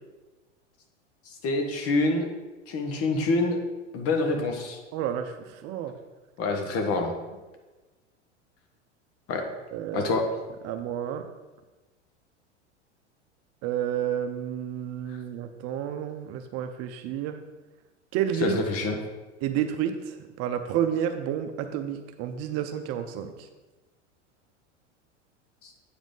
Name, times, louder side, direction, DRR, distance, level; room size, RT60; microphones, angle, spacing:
voice 1, 1.4-2.3 2.7-3.6 3.9-4.8 6.4-7.1 9.3-9.4 9.9-10.3 18.4-19.0 25.6-25.7, left 2 dB, 40° left, 4 dB, 1.3 m, -26 dB
voice 2, 4.9-5.9 9.7-10.1 10.6-11.2 13.6-17.4 18.1-18.6 19.4-23.5, right 9 dB, 45° right, 7 dB, 0.7 m, -30 dB
8.3 x 5.0 x 3.9 m, 1.2 s
hypercardioid pair, 90°, 36 cm